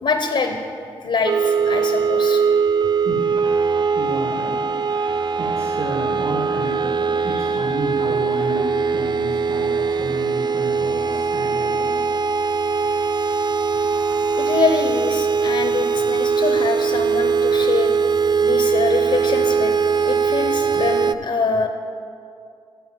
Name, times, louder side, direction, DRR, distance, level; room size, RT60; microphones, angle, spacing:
voice 1, 0.0-0.6 1.0-2.4 7.4-7.5 14.4-17.9 18.4-19.7 20.0-21.7, left 4 dB, 65° left, 6 dB, 0.8 m, -24 dB
sound 1, 1.3-21.2, right 5 dB, 40° right, 0.4 m, -21 dB
voice 2, 2.9-3.6 3.9-12.1, right 2 dB, 65° right, -2 dB, 1.8 m, -31 dB
13.5 x 4.6 x 7.5 m, 2.5 s
supercardioid pair, 45°, 11 cm